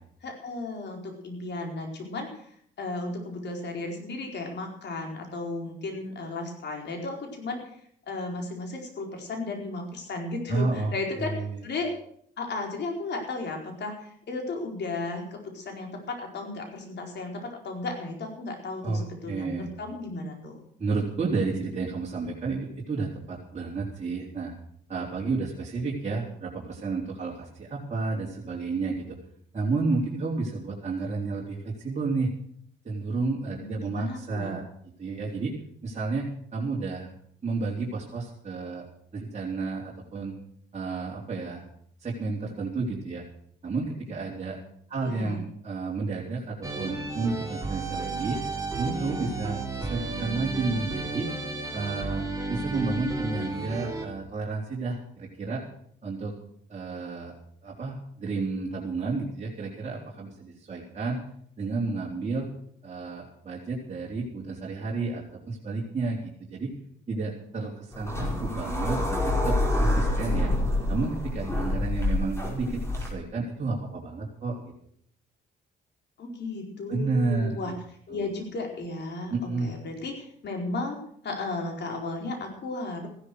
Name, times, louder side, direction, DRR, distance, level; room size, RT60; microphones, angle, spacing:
voice 1, 0.2-2.3 2.8-7.6 8.1-11.4 11.6-11.9 12.4-20.6 33.6-34.5 45.0-45.4 76.2-77.7 78.1-81.0 81.2-83.1, left 2 dB, 60° left, 2 dB, 4.7 m, -34 dB
voice 2, 10.5-11.6 18.8-19.7 20.8-24.5 24.9-29.2 29.5-32.3 32.8-34.6 35.0-35.5 35.8-37.1 37.4-38.8 39.1-40.3 40.7-41.6 42.0-43.2 43.6-44.6 44.9-48.4 48.8-51.3 51.7-55.6 56.0-56.3 56.7-57.3 57.6-61.2 61.6-62.5 62.8-66.7 67.1-70.5 70.9-74.6 76.9-77.7 78.1-78.3 79.3-79.7, right 3 dB, 35° right, -4 dB, 3.8 m, -31 dB
sound 1, 46.6-54.1, right 3 dB, 15° right, 3.6 m, -33 dB
sound 2, 67.9-73.1, left 1 dB, 15° left, 5.0 m, -27 dB
15.5 x 11.5 x 6.4 m, 0.64 s
cardioid pair, 90°, 20 cm